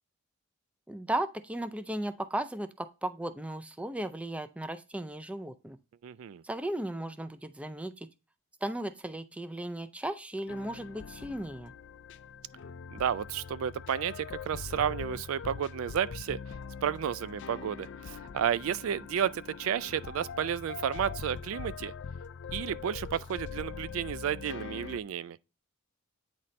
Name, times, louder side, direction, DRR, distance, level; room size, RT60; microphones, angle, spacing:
voice 1, 0.9-5.8 6.4-8.1 8.6-11.7, right 1 dB, 5° right, 0.4 m, -36 dB
voice 2, 6.0-6.4 12.9-16.4 16.8-21.9 22.5-25.4, right 9 dB, 75° right, 0.3 m, -32 dB
sound 1, 10.5-25.0, left 6 dB, 55° left, 0.4 m, -42 dB
8.9 x 4.2 x 3.2 m
head